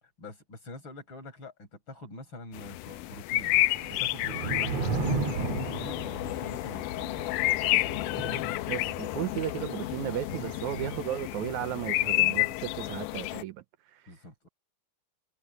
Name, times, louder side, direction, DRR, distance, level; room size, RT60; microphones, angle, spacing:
voice 1, 0.2-3.5 3.9-4.9 5.3-7.3 14.1-14.5, left 1 dB, 35° left, 8.3 m, -45 dB
sound 1, 2.5-13.4, left 18 dB, 85° left, 2.1 m, -30 dB
Thunder / Rain, 3.4-11.8, right 3 dB, 55° right, 3.1 m, -36 dB
voice 2, 8.7-13.6 13.9-14.0, right 13 dB, 80° right, 1.9 m, -34 dB
omnidirectional pair, 3.8 m